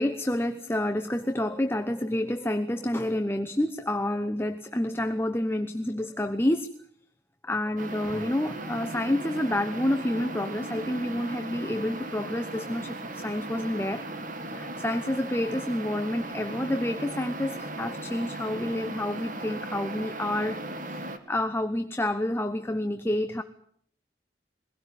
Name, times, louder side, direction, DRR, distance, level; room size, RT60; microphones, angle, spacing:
voice 1, 0.0-6.7 7.4-14.1 14.5-23.4, left 1 dB, 15° left, 8 dB, 0.9 m, -29 dB
sound 1, 7.8-21.2, right 2 dB, 50° right, 2.2 m, -37 dB
22.5 x 17.0 x 9.3 m, 0.67 s
head